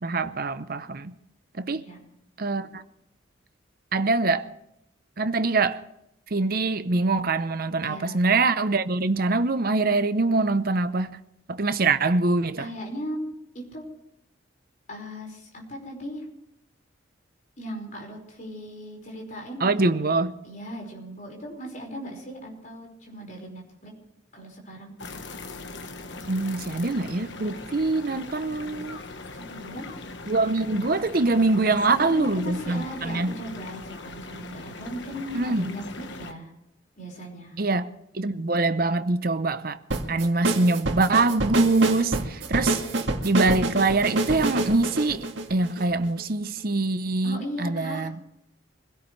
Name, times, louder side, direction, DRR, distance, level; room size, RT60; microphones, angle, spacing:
voice 1, 0.0-1.1 1.6-1.8 2.4-2.8 3.9-4.5 5.2-5.8 6.3-11.1 11.5-12.7 19.6-20.4 26.3-29.0 30.3-33.3 35.3-35.7 37.6-39.8 40.1-42.8 43.2-48.1, right 3 dB, 45° right, 0.7 m, -24 dB
voice 2, 1.7-2.0 2.6-2.7 7.8-8.2 12.6-13.2 13.5-13.9 14.9-16.2 17.6-20.1 20.4-23.9 24.3-24.9 29.3-29.9 31.8-36.5 37.0-37.6 47.2-48.1, equal, 40° left, 5.1 m, -37 dB
sound 1, 25.0-36.3, left 3 dB, 60° left, 1.3 m, -40 dB
sound 2, 39.9-46.2, right 2 dB, 60° right, 1.9 m, -27 dB
25.5 x 17.0 x 3.3 m
head